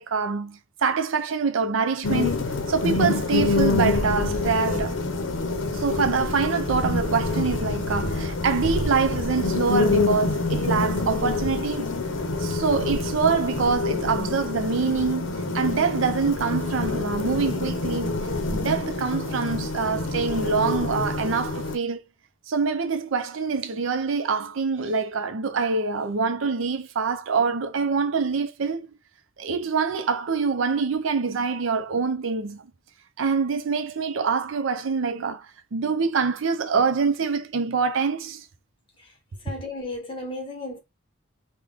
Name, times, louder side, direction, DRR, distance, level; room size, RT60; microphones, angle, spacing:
voice 1, 0.0-2.4 2.7-5.0 5.7-11.9 12.4-15.3 15.5-18.2 18.5-22.0 22.5-28.9 29.4-32.6 33.2-38.5, right 5 dB, 65° right, 0.5 m, -25 dB
sound 1, 2.0-21.8, left 3 dB, 60° left, 0.7 m, -26 dB
voice 2, 39.4-40.8, left 2 dB, 25° left, 1.0 m, -34 dB
3.5 x 2.2 x 3.4 m
head